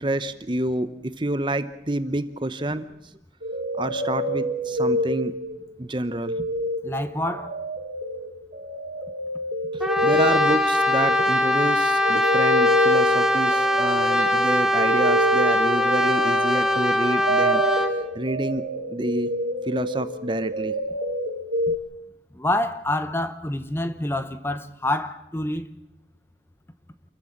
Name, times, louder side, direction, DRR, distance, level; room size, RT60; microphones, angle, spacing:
voice 1, 0.0-2.8 3.8-5.3 5.8-6.5 9.7-18.6 18.9-19.3 19.6-20.7 21.7-21.8, right 1 dB, 25° right, 0.8 m, -28 dB
sound 1, 3.4-5.8 6.0-21.8, equal, 60° right, 3.3 m, -27 dB
voice 2, 6.8-7.5 22.3-25.7, left 1 dB, 15° left, 0.9 m, -27 dB
Brass instrument, 9.8-18.0, left 1 dB, 5° right, 1.6 m, -22 dB
28.5 x 14.5 x 7.3 m
head